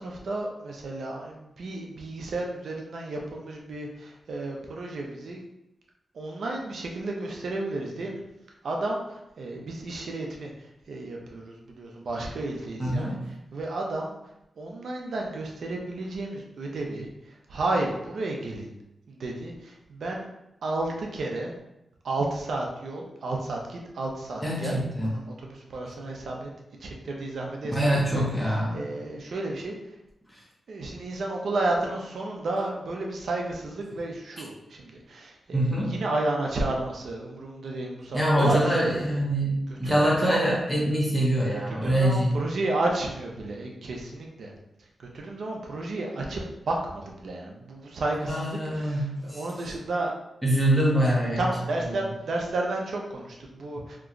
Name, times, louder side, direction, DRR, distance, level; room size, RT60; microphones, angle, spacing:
voice 1, 0.0-5.4 6.1-8.2 8.6-14.2 14.6-18.7 19.1-20.3 20.6-21.5 22.0-24.8 25.0-26.5 26.8-29.8 30.7-38.9 39.7-40.4 41.5-44.5 45.0-50.1 51.4-54.0, right 2 dB, 75° right, 0 dB, 0.6 m, -32 dB
voice 2, 12.8-13.3 24.4-25.1 27.7-28.8 30.3-30.4 35.5-36.0 38.1-42.4 48.3-49.4 50.4-51.5, right 1 dB, 5° right, -5 dB, 0.9 m, -24 dB
2.9 x 2.3 x 3.8 m, 0.88 s
wide cardioid pair, 90°, 0 cm